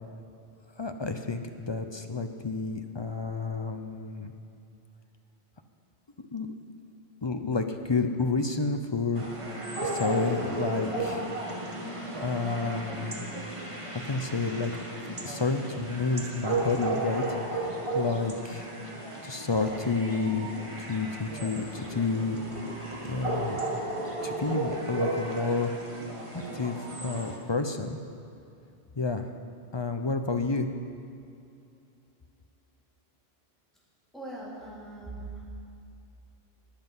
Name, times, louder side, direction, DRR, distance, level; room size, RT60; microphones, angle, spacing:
voice 1, 0.8-4.3 6.3-6.5 7.2-9.2 9.5-11.2 12.2-13.2 13.9-14.7 15.1-17.2 17.5-18.7 19.2-20.5 20.8-22.4 23.0-23.7 24.2-25.7 26.3-28.0 29.0-29.3 29.7-30.7, left 3 dB, 30° left, 6 dB, 0.6 m, -30 dB
sound 1, 9.2-27.4, right 2 dB, 30° right, 1.5 m, -34 dB
voice 2, 34.1-35.4, right 2 dB, ahead, -7 dB, 3.4 m, -40 dB
20.5 x 7.8 x 5.6 m, 2.7 s
omnidirectional pair, 1.1 m